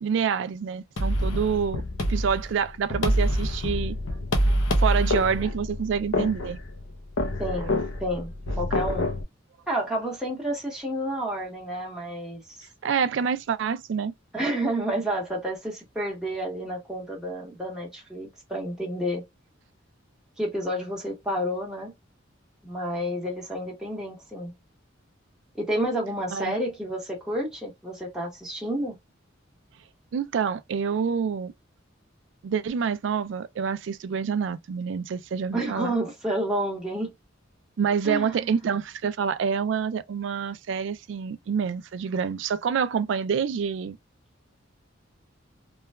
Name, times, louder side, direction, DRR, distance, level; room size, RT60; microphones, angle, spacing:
voice 1, 0.0-1.8 2.1-4.0 4.8-6.6 12.8-14.1 26.3-26.6 30.1-31.5 32.4-35.9 37.8-44.0, right 6 dB, 65° right, 0.3 m, -27 dB
sound 1, 1.0-9.2, equal, 75° left, 0.6 m, -26 dB
voice 2, 7.4-8.3 8.6-9.1 9.7-12.7 14.3-19.3 20.4-21.9 22.6-24.5 25.6-28.9 35.5-37.1 38.0-38.5, right 1 dB, 5° right, 0.9 m, -30 dB
3.1 x 2.2 x 2.2 m
head